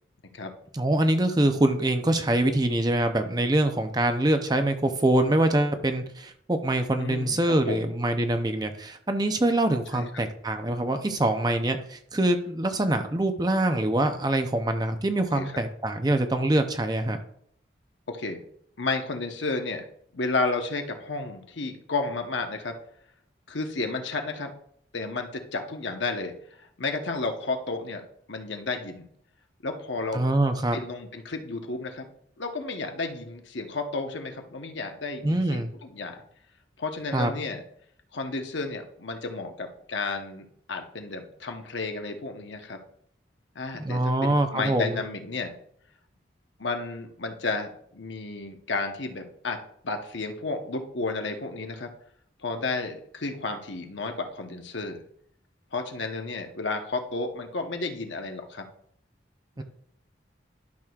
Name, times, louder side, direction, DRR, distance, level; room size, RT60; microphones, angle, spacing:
voice 1, 0.7-17.2 30.1-30.8 35.2-35.7 37.1-37.3 43.8-45.0 59.6-59.7, right 1 dB, 20° right, 7 dB, 0.6 m, -24 dB
voice 2, 7.0-7.9 9.9-10.1 15.3-15.5 18.1-18.4 18.8-19.8 20.1-22.8 23.5-24.5 24.9-26.3 26.6-28.0 28.3-29.1 29.6-30.2 30.7-32.1 32.4-36.2 36.8-37.6 38.1-42.8 43.5-45.5 46.6-49.6 49.8-51.9 52.4-55.0 55.7-58.7, left 3 dB, 85° left, 5 dB, 1.0 m, -32 dB
12.0 x 6.2 x 2.4 m, 0.66 s
head